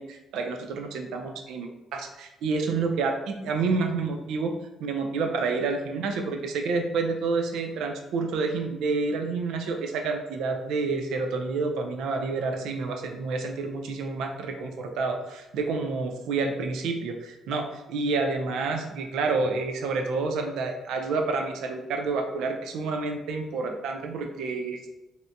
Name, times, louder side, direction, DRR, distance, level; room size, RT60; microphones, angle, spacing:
voice 1, 0.0-4.5 4.8-24.9, right 4 dB, 85° right, 4 dB, 0.4 m, -29 dB
2.7 x 2.1 x 2.6 m, 0.98 s
cardioid pair, 90°, 0 cm